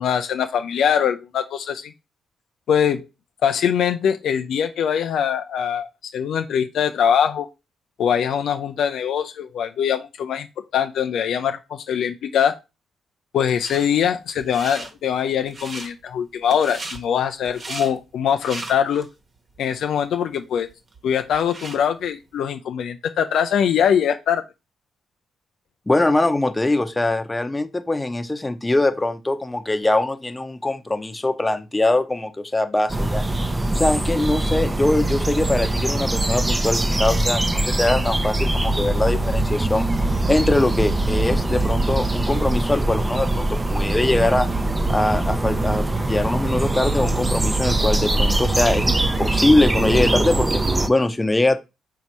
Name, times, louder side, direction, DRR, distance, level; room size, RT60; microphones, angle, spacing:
voice 1, 0.0-1.9 2.7-3.0 3.4-5.9 6.1-7.5 8.0-10.5 10.7-12.6 13.3-19.1 19.6-20.7 21.0-24.4, left 8 dB, 65° left, 0.4 m, -22 dB
sound 1, 13.6-13.9 14.4-14.9 15.4-15.9 16.5-17.0 17.4-17.9 18.3-19.1 19.5-19.6 20.3-20.4 20.7-21.8, right 2 dB, 45° right, 1.2 m, -36 dB
voice 2, 25.9-33.2 33.7-39.9 40.3-44.5 44.9-51.6, left 2 dB, 20° left, 0.7 m, -22 dB
sound 2, 32.9-50.9, right 2 dB, 20° right, 0.6 m, -22 dB
4.0 x 2.7 x 4.5 m
hypercardioid pair, 45°, 0 cm